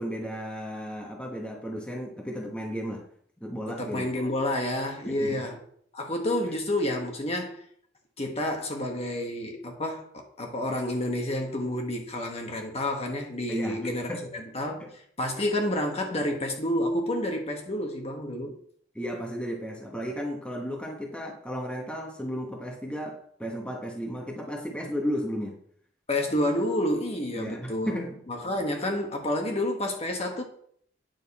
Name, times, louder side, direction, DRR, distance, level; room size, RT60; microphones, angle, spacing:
voice 1, 0.0-3.0 3.4-4.2 5.0-5.5 13.5-14.2 14.8-14.9 18.9-25.6 27.3-28.2, equal, 5° left, 1.2 m, -34 dB
voice 2, 3.7-5.6 5.9-7.6 8.2-18.5 26.1-28.0 28.3-30.4, left 1 dB, 35° left, 1.3 m, -29 dB
9.3 x 6.5 x 4.2 m
head